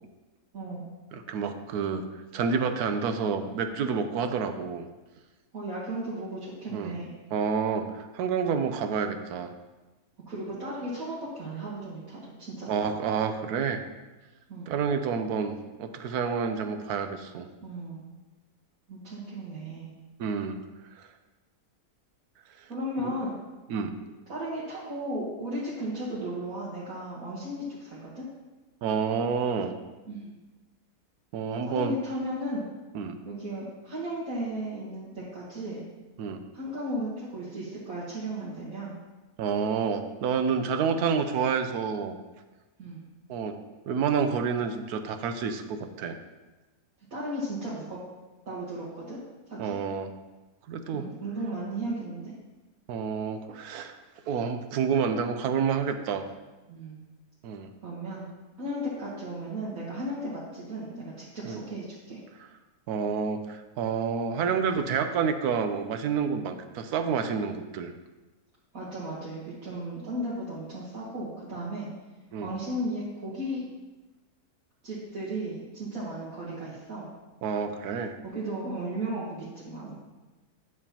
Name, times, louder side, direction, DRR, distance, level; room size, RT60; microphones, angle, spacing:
voice 1, 1.1-2.1 2.3-4.9 6.7-6.9 7.3-9.5 12.7-13.8 14.7-17.5 20.2-20.6 23.7-23.9 28.8-29.7 31.3-31.9 32.9-33.2 36.2-36.4 39.4-42.2 43.3-43.6 43.9-46.2 49.6-50.1 50.7-51.0 52.9-53.9 54.3-56.2 57.4-57.7 61.5-61.6 62.9-67.9 72.3-72.5 77.4-78.1, right 6 dB, 85° right, 8 dB, 1.2 m, -29 dB
voice 2, 5.5-7.1 10.3-12.9 14.5-14.7 17.6-18.1 18.9-19.9 22.7-23.3 24.3-28.2 30.1-30.3 31.6-32.6 33.3-35.8 36.5-38.9 42.8-43.0 47.1-48.0 48.5-49.2 49.5-49.7 50.9-52.3 56.7-57.0 57.8-58.3 58.6-62.2 68.7-71.9 72.4-73.6 74.8-77.1 78.2-80.0, right 1 dB, 65° right, -8 dB, 1.9 m, -35 dB
9.6 x 7.2 x 2.9 m, 1.2 s
omnidirectional pair, 1.6 m